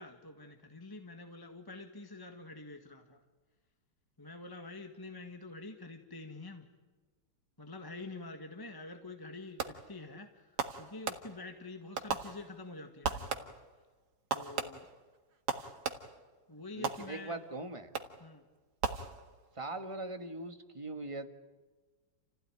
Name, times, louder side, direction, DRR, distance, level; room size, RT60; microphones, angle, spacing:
voice 1, 0.0-3.2 4.2-6.7 7.6-10.5 10.8-13.5 14.3-14.9 16.5-17.4 18.2-18.4, left 2 dB, 10° left, 5 dB, 1.6 m, -47 dB
Fireworks, 9.6-10.0 10.6-11.6 12.0-12.7 13.0-13.7 14.3-16.3 16.8-17.5 17.9-18.3 18.8-19.6, right 5 dB, 55° right, 2.2 m, -38 dB
voice 2, 16.8-17.9 19.5-21.3, right 2 dB, 15° right, 8 dB, 1.5 m, -41 dB
29.0 x 16.0 x 9.9 m, 1.3 s
omnidirectional pair, 2.2 m